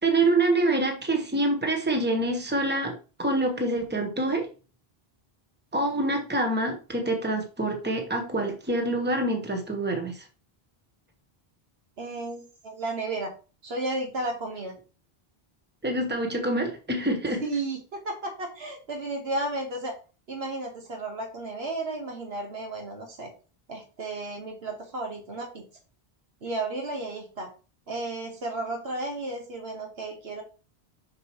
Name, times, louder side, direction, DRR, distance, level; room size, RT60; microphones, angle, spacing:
voice 1, 0.0-4.5 5.7-10.3 15.8-17.4, right 2 dB, 10° right, 1.2 m, -26 dB
voice 2, 12.0-13.3 13.6-14.8 17.4-19.9 20.3-23.3 23.7-25.6 26.4-27.5 27.9-30.4, right 2 dB, 85° right, 1.6 m, -33 dB
6.6 x 6.0 x 3.0 m
omnidirectional pair, 1.0 m